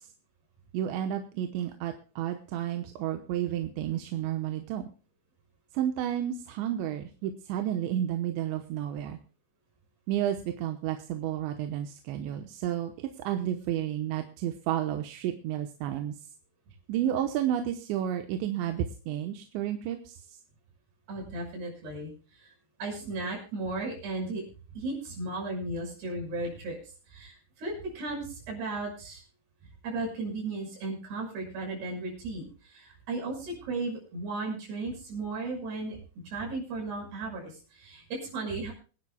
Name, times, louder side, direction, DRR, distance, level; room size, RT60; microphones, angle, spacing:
voice 1, 0.7-4.9 5.7-9.2 10.1-16.1 16.9-20.2, right 11 dB, 80° right, 5 dB, 3.0 m, -31 dB
voice 2, 21.1-22.5 22.8-24.4 24.7-26.8 27.1-29.2 29.8-36.0 36.3-38.7, right 2 dB, 60° right, 0 dB, 8.0 m, -35 dB
26.0 x 10.5 x 2.2 m, 0.37 s
omnidirectional pair, 5.5 m